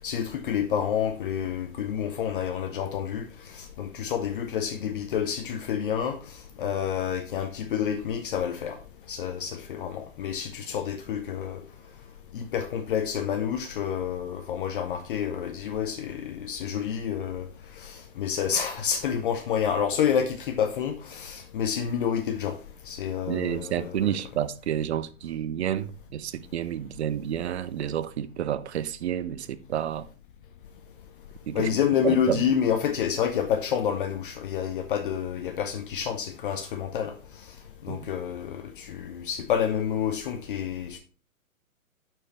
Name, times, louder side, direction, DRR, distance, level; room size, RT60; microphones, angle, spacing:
voice 1, 0.0-8.8 9.1-11.6 12.3-17.5 17.8-22.6 22.9-24.0 31.5-37.1 37.8-41.0, left 8 dB, 40° left, 0.7 m, -29 dB
voice 2, 23.3-30.1 31.5-31.7 32.0-32.4 37.9-38.1, right 10 dB, 50° right, 0.7 m, -30 dB
11.0 x 4.6 x 3.2 m
figure-of-eight pair, 120°, 42 cm